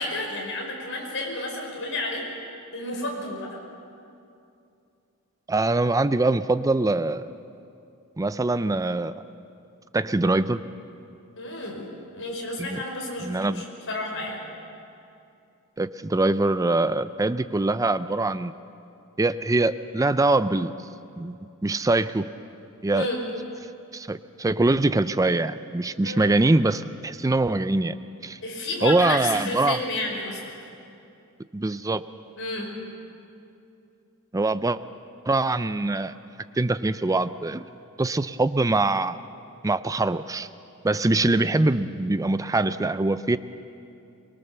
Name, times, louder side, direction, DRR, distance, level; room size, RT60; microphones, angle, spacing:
voice 1, 0.0-2.2 2.7-3.5 11.4-11.9 12.1-14.4 22.9-23.2 26.0-26.3 28.4-30.5 32.4-32.7, left 2 dB, 60° left, 0 dB, 5.1 m, -31 dB
voice 2, 5.5-7.3 8.2-9.1 9.9-10.6 12.6-12.8 13.2-13.6 15.8-18.5 19.2-20.7 21.2-21.4 21.6-22.3 22.8-23.1 23.9-28.0 28.2-28.4 28.8-29.8 31.5-32.0 34.3-34.8 35.3-36.1 36.6-37.7 38.0-39.2 39.6-40.5 40.8-43.4, right 2 dB, 15° right, 13 dB, 0.4 m, -23 dB
23.5 x 22.0 x 6.9 m, 2.6 s
head